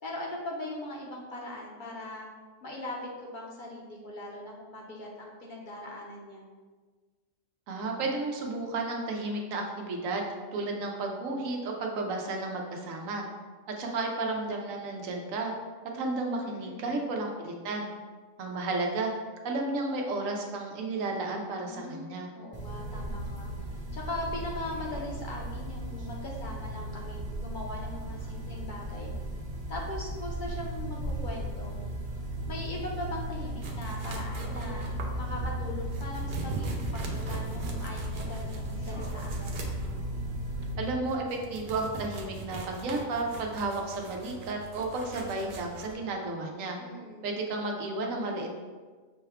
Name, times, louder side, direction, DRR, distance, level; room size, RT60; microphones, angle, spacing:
voice 1, 0.0-2.3 2.6-6.5 16.4-16.8 21.6-23.5 23.9-29.1 29.7-31.7 32.5-34.9 35.1-39.6 46.8-47.3, left 1 dB, 45° left, -2 dB, 0.7 m, -40 dB
voice 2, 7.7-13.2 13.8-15.5 15.9-17.9 18.4-19.1 19.4-22.3 40.8-46.8 47.2-48.5, right 2 dB, 85° right, 1 dB, 1.1 m, -32 dB
sound 1, 22.5-40.7, right 1 dB, 20° right, 0.8 m, -36 dB
sound 2, 33.6-45.9, right 3 dB, 55° right, 0.6 m, -41 dB
6.1 x 2.2 x 3.5 m, 1.4 s
omnidirectional pair, 1.3 m